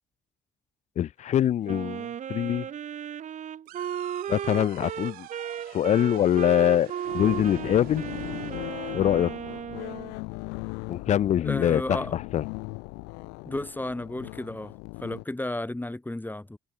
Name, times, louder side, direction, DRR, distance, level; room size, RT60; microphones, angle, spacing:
voice 1, 1.0-2.7 4.3-5.3 5.7-8.0 8.9-9.3 10.9-12.4, left 11 dB, 50° left, 0.5 m, -24 dB
Wind instrument woodwind instrument, 1.7-10.1, right 9 dB, 55° right, 1.2 m, -35 dB
sound 1, 3.7-8.7, right 18 dB, 80° right, 6.4 m, -46 dB
sound 2, 7.0-15.2, left 32 dB, 85° left, 4.4 m, -38 dB
voice 2, 11.4-12.2 13.4-16.6, left 1 dB, 10° left, 4.1 m, -33 dB
supercardioid pair, 60°, 15 cm